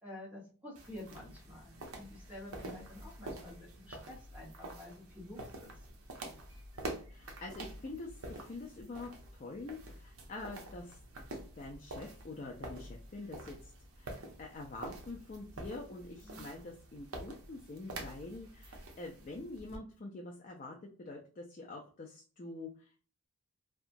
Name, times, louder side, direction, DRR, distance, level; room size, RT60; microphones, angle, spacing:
voice 1, 0.0-5.7 16.2-16.5, left 1 dB, 5° right, -4 dB, 1.0 m, -50 dB
sound 1, 0.8-19.8, right 2 dB, 70° right, 0.6 m, -47 dB
voice 2, 7.1-11.0 11.5-13.7 14.0-22.9, left 2 dB, 35° left, 0 dB, 0.3 m, -46 dB
2.8 x 2.3 x 2.5 m, 0.39 s
head